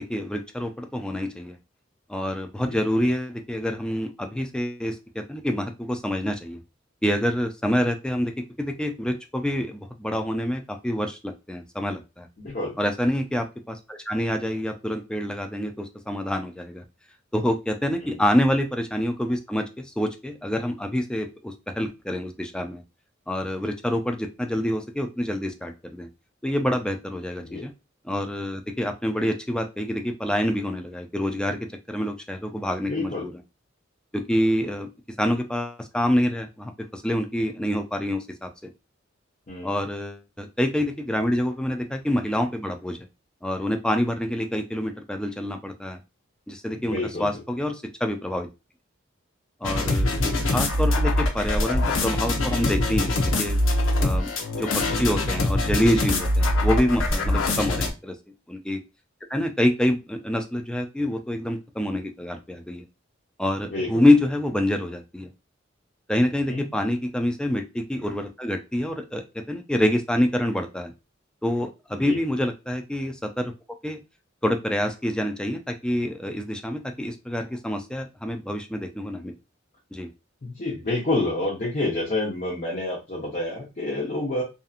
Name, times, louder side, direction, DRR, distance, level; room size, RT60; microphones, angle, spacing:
voice 1, 0.1-1.6 2.1-6.6 7.0-8.3 8.6-12.3 12.8-16.8 17.3-22.8 23.3-26.1 26.4-27.7 28.0-31.6 31.9-33.4 34.1-34.9 35.2-38.5 39.6-43.0 43.4-46.0 46.5-48.5 49.6-53.6 54.0-58.2 58.5-58.8 59.3-62.8 63.4-65.3 66.1-70.9 71.4-73.5 73.8-74.0 74.4-79.3 79.9-80.1, left 1 dB, 5° left, 5 dB, 0.3 m, -26 dB
voice 2, 12.4-12.7 18.0-18.2 27.4-27.6 32.9-33.3 39.5-39.7 46.8-47.3 50.0-50.4 57.3-57.6 63.6-64.0 66.5-66.7 71.9-72.2 80.4-84.4, left 2 dB, 40° left, -5 dB, 0.8 m, -29 dB
sound 1, 49.6-57.9, left 1 dB, 90° left, 0.6 m, -23 dB
2.7 x 2.5 x 2.4 m, 0.27 s
head